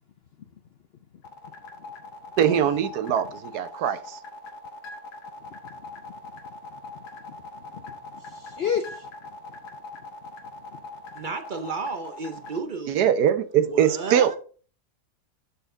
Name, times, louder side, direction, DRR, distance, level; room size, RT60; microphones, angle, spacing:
sound 1, 1.2-12.6, left 3 dB, 85° left, 1.8 m, -41 dB
voice 1, 2.4-4.2 12.9-14.4, right 9 dB, 80° right, 1.3 m, -22 dB
voice 2, 7.3-9.1, left 7 dB, 65° left, 0.6 m, -32 dB
voice 3, 11.2-13.1 13.7-14.4, right 4 dB, 50° right, 0.5 m, -32 dB
11.5 x 4.3 x 3.7 m
omnidirectional pair, 1.7 m